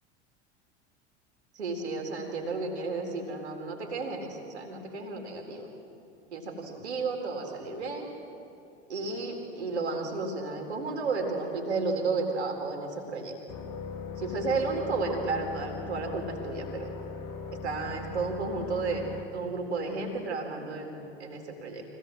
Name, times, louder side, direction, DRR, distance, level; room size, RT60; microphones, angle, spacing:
voice 1, 1.5-5.7 6.3-8.1 8.9-13.3 14.2-16.9 17.5-19.0 19.3-21.8, right 3 dB, 70° right, 2 dB, 4.0 m, -32 dB
sound 1, 13.5-19.2, left 5 dB, 50° left, 2.5 m, -39 dB
25.0 x 18.0 x 7.8 m, 2.8 s
figure-of-eight pair, 85°, 34 cm